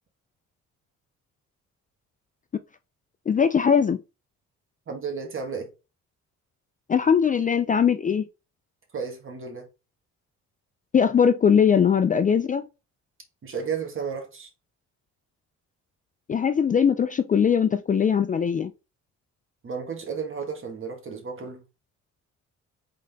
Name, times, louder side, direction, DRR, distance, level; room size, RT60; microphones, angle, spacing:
voice 1, 3.3-4.0 6.9-8.3 10.9-12.7 16.3-18.7, left 7 dB, 30° left, 0.3 m, -20 dB
voice 2, 4.9-5.7 8.9-9.7 13.4-14.5 19.6-21.6, right 6 dB, 45° right, 1.6 m, -33 dB
3.8 x 3.8 x 3.5 m
cardioid pair, 90°, 30 cm